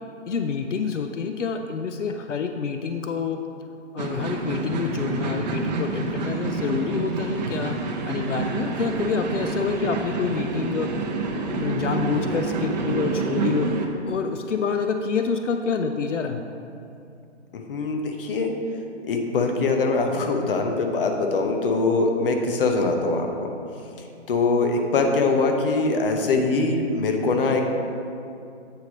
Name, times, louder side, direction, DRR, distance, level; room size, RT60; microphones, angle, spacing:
voice 1, 0.3-3.4 3.9-7.8 8.1-10.9 11.5-13.7 14.1-16.4, left 5 dB, 90° left, 6 dB, 0.5 m, -27 dB
sound 1, 4.0-13.9, right 4 dB, 40° right, 0.7 m, -28 dB
voice 2, 17.7-18.5 19.1-23.3 24.3-27.6, left 3 dB, 50° left, 3 dB, 0.9 m, -22 dB
8.0 x 3.3 x 5.1 m, 2.6 s
figure-of-eight pair, 135°, 35 cm